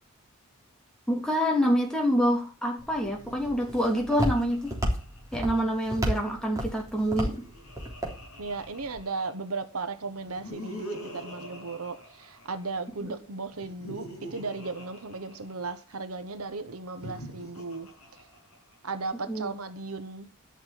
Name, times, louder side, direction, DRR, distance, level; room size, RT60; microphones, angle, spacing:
voice 1, 1.1-4.7 5.3-7.4 13.0-13.2 19.3-19.5, equal, 5° left, 3.1 m, -26 dB
Walk footsteps, 2.8-9.0, equal, 15° right, 3.4 m, -33 dB
Laughter, 3.1-5.8 6.9-9.5 10.2-12.9 13.5-15.9 16.8-18.9, equal, 75° left, 7.4 m, -45 dB
voice 2, 8.4-10.9 11.1-17.9 18.8-20.3, right 3 dB, 75° right, 1.2 m, -36 dB
12.0 x 6.1 x 7.3 m
head